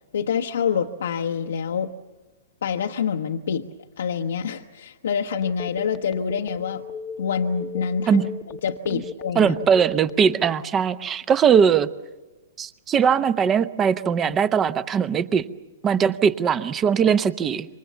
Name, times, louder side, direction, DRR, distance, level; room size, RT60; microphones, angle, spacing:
voice 1, 0.1-1.9 2.6-3.7 4.0-6.8 7.2-9.6, left 7 dB, 70° left, 2 dB, 0.9 m, -26 dB
Telephone, 5.4-10.6, left 5 dB, 20° left, 0.9 m, -36 dB
voice 2, 9.4-11.9 12.6-15.5 15.8-17.7, right 7 dB, 25° right, 15 dB, 0.9 m, -20 dB
27.5 x 23.5 x 7.1 m, 1.2 s
figure-of-eight pair, 110°, 0 cm